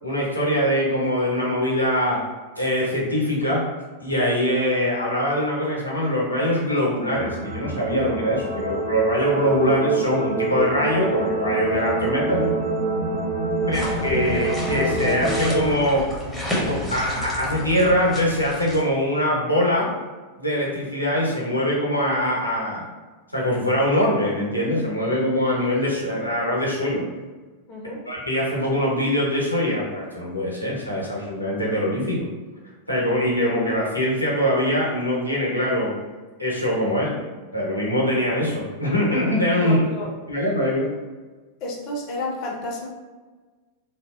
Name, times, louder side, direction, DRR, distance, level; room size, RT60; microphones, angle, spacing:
voice 1, 0.0-2.2 2.6-3.6 4.0-12.5 13.7-16.0 16.7-19.9 20.4-22.8 23.3-27.0 28.1-32.2 32.9-35.9 36.4-37.2 37.5-39.8 40.3-40.9, equal, 90° left, -5 dB, 0.6 m, -23 dB
sound 1, 7.1-15.7, right 2 dB, 35° right, 0.4 m, -26 dB
sound 2, 13.7-18.8, left 1 dB, ahead, 0.7 m, -31 dB
voice 2, 27.7-28.0 39.6-40.1 41.6-42.9, left 2 dB, 40° left, -2 dB, 0.5 m, -31 dB
2.7 x 2.0 x 2.2 m, 1.3 s
figure-of-eight pair, 90°, 0 cm